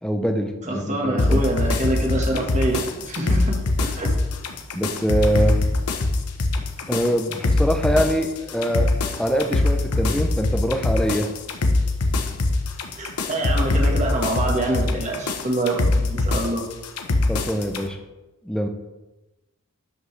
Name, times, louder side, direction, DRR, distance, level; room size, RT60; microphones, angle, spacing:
voice 1, 0.0-1.4 4.7-5.6 6.9-8.9 9.2-11.3 17.3-18.0 18.4-18.7, equal, 5° left, 5 dB, 0.6 m, -23 dB
voice 2, 0.7-4.1 13.0-16.6, right 1 dB, 30° right, 1 dB, 1.4 m, -26 dB
sound 1, 1.2-17.8, left 2 dB, 90° left, 0.9 m, -23 dB
12.5 x 5.3 x 3.3 m, 1.1 s
head